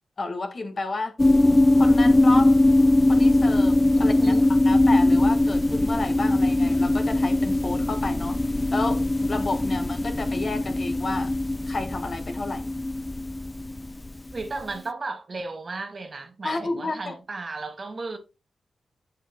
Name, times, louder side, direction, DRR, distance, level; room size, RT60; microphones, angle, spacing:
voice 1, 0.2-1.1 1.8-2.6 3.1-4.4 4.6-8.4 8.7-11.3 11.7-12.7 16.4-17.1, left 3 dB, 50° left, 1.4 m, -31 dB
sound 1, 1.2-14.6, left 1 dB, 20° left, 0.4 m, -21 dB
voice 2, 4.0-4.5 14.3-18.2, right 3 dB, 45° right, 1.5 m, -35 dB
7.8 x 6.6 x 2.2 m
cardioid pair, 75°, 0 cm